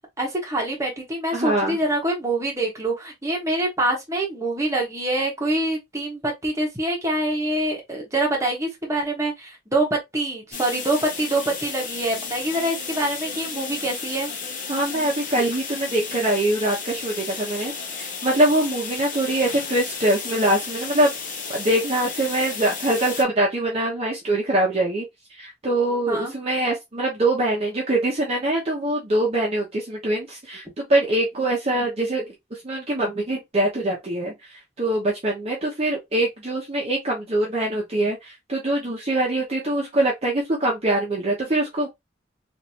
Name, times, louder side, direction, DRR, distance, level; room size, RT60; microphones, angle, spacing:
voice 1, 0.2-14.3 26.1-26.3, right 1 dB, 15° right, 1.1 m, -25 dB
voice 2, 1.3-1.8 14.7-21.1 21.5-25.1 25.4-32.2 32.6-41.9, right 1 dB, 35° right, 0.8 m, -23 dB
sound 1, 10.5-23.2, left 5 dB, 45° left, 0.8 m, -33 dB
3.2 x 2.6 x 2.7 m
head